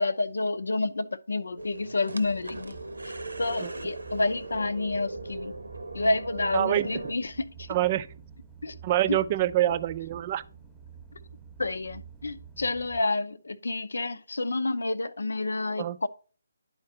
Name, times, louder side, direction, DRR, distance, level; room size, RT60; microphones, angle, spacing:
voice 1, 0.0-2.7 3.1-3.2 3.4-5.5 5.9-7.7 8.6-8.8 9.1-9.2 11.6-16.1, left 2 dB, 70° left, 0.6 m, -29 dB
sound 1, 1.6-7.1, right 2 dB, 75° right, 0.9 m, -39 dB
sound 2, 2.2-13.0, right 7 dB, 5° right, 0.9 m, -49 dB
voice 2, 6.5-7.1 7.7-8.1 8.8-10.4 15.8-16.0, right 13 dB, 30° right, 0.5 m, -26 dB
11.5 x 4.4 x 2.7 m
figure-of-eight pair, 145°, 0 cm